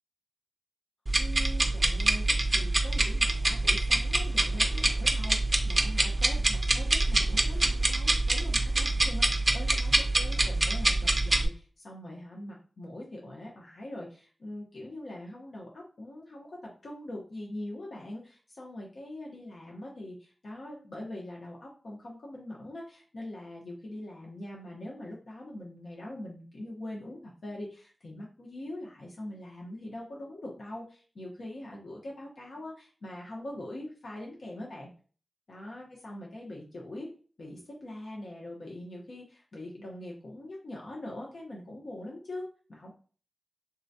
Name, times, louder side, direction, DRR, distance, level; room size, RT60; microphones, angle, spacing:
sound 1, 1.1-11.5, right 2 dB, 25° right, 0.5 m, -26 dB
voice 1, 1.2-34.9 35.5-37.1 37.4-42.4 42.7-42.9, left 1 dB, 70° left, -3 dB, 0.8 m, -43 dB
3.7 x 2.2 x 2.6 m, 0.39 s
wide cardioid pair, 90°, 0 cm